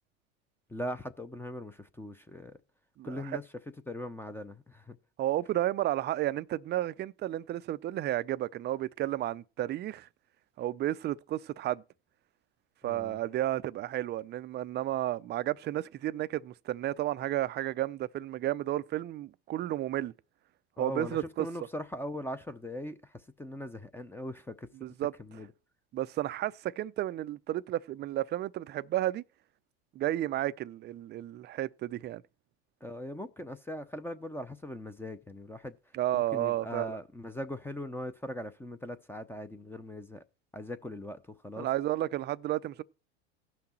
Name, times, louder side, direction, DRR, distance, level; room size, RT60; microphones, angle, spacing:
voice 1, 0.7-2.6 3.0-3.5 3.9-5.0 12.8-13.2 20.8-24.7 25.2-25.5 32.8-40.2 40.5-41.7, left 1 dB, 5° left, 0.6 m, -40 dB
voice 2, 5.2-10.1 10.6-11.8 12.8-20.1 20.8-21.5 24.8-25.1 25.9-29.2 29.9-32.2 35.9-37.0 41.6-42.8, right 14 dB, 30° right, 0.5 m, -32 dB
16.0 x 5.9 x 4.3 m
hypercardioid pair, 100°, 34 cm